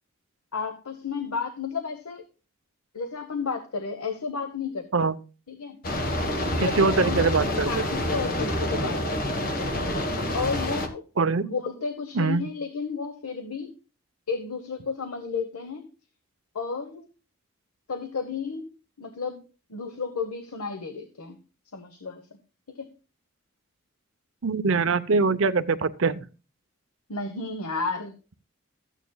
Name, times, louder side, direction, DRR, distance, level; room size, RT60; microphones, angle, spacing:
voice 1, 0.5-2.2 2.9-4.9 5.5-5.8 6.5-7.3 7.6-9.5 10.3-11.0 11.4-13.7 14.3-15.9 16.5-17.1 17.9-18.7 19.0-19.4 19.7-21.4 21.7-22.2 22.8-22.9 27.1-28.1, left 5 dB, 90° left, 1.0 m, -32 dB
sound 1, 5.8-10.9, left 1 dB, 40° left, 1.3 m, -27 dB
voice 2, 6.6-7.9 11.2-11.4 12.1-12.4 24.4-26.3, right 4 dB, 60° right, 0.6 m, -23 dB
14.0 x 9.0 x 2.3 m
head